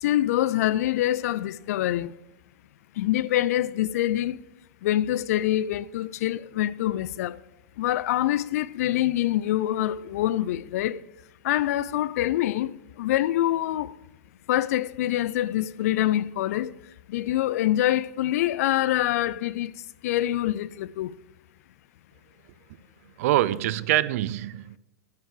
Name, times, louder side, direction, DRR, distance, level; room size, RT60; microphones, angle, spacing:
voice 1, 0.0-2.1 3.0-4.4 4.8-7.4 7.8-11.0 11.4-13.9 14.5-16.7 17.1-19.7 20.0-21.1, left 13 dB, 65° left, 0.3 m, -25 dB
voice 2, 23.0-24.8, right 14 dB, 60° right, 0.4 m, -25 dB
8.1 x 4.6 x 6.5 m
hypercardioid pair, 125°, 9 cm